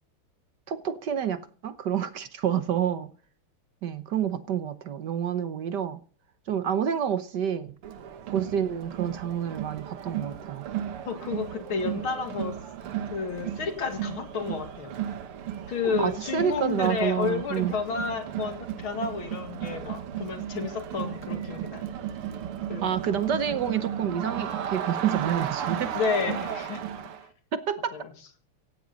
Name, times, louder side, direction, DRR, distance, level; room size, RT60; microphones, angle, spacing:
voice 1, 0.7-3.1 3.8-6.0 6.5-7.8 8.3-10.7 15.8-17.7 22.8-25.9 27.5-28.0, right 8 dB, 60° right, 1.4 m, -28 dB
Crowd, 7.8-27.3, right 10 dB, 85° right, 2.2 m, -34 dB
voice 2, 11.1-12.6 13.1-14.9 15.7-21.9 22.7-23.0 25.9-26.8 27.9-28.1, left 6 dB, 70° left, 2.8 m, -31 dB
17.5 x 16.0 x 4.1 m
omnidirectional pair, 2.4 m